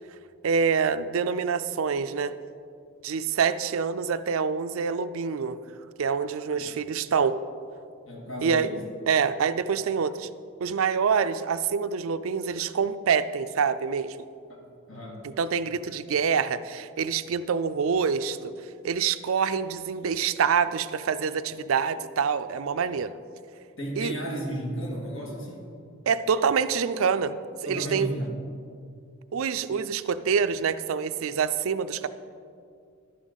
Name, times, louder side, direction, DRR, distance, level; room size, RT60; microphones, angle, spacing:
voice 1, 0.4-2.4 3.0-5.6 6.0-7.4 8.4-8.7 9.1-10.3 10.6-14.2 15.2-18.5 18.8-23.1 24.0-24.2 26.1-27.3 27.6-28.1 29.3-32.1, right 6 dB, 85° right, 13 dB, 0.4 m, -26 dB
voice 2, 8.1-8.9 14.5-15.2 23.8-25.7 27.7-28.4, equal, 70° left, -1 dB, 2.2 m, -34 dB
11.5 x 9.8 x 4.0 m, 2.4 s
head